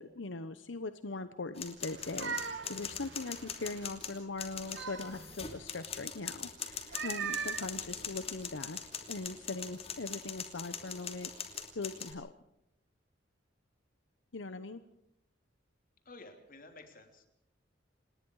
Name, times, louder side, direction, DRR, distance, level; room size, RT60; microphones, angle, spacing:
voice 1, 0.0-8.8 9.1-12.3 14.3-14.8, left 3 dB, 90° left, 12 dB, 0.9 m, -41 dB
sound 1, 1.6-12.1, left 6 dB, 35° left, 2.9 m, -42 dB
sound 2, 1.9-3.9 4.4-5.6 6.7-8.6, right 5 dB, 70° right, 2.3 m, -41 dB
voice 2, 16.0-17.3, left 2 dB, 50° left, 5 dB, 3.5 m, -52 dB
27.5 x 20.0 x 4.8 m, 0.83 s
head